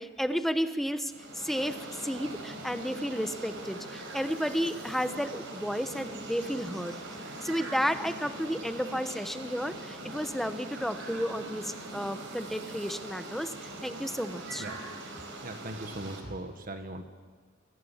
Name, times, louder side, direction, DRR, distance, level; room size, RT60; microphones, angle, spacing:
voice 1, 0.0-1.8 2.0-7.0 7.4-13.5 13.8-14.6, equal, ahead, 9 dB, 1.1 m, -32 dB
sound 1, 1.1-16.2, right 2 dB, 65° right, 5.4 m, -42 dB
voice 2, 15.4-17.0, right 2 dB, 45° right, 6 dB, 1.6 m, -40 dB
24.5 x 19.0 x 7.4 m, 1.5 s
head